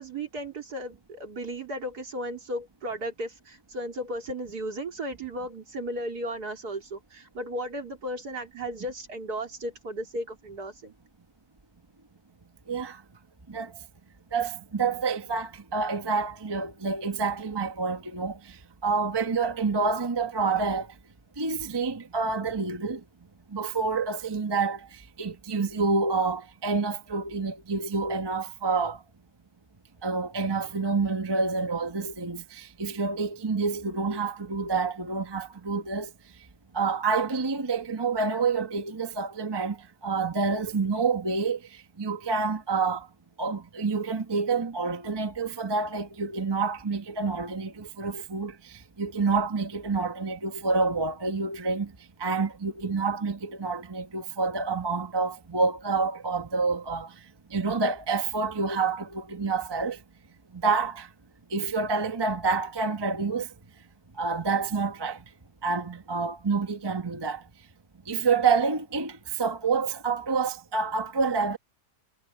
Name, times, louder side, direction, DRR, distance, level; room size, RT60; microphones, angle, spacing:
voice 1, 0.0-10.9, right 1 dB, 60° right, 4.0 m, -35 dB
voice 2, 12.7-13.0 13.5-13.8 14.3-21.0 21.4-23.0 23.5-29.0 30.0-36.5 36.7-43.1 43.4-60.0 60.5-61.1 61.5-63.5 64.1-65.3 65.6-67.5 68.0-71.6, right 4 dB, 15° right, 1.0 m, -28 dB
omnidirectional pair, 1.9 m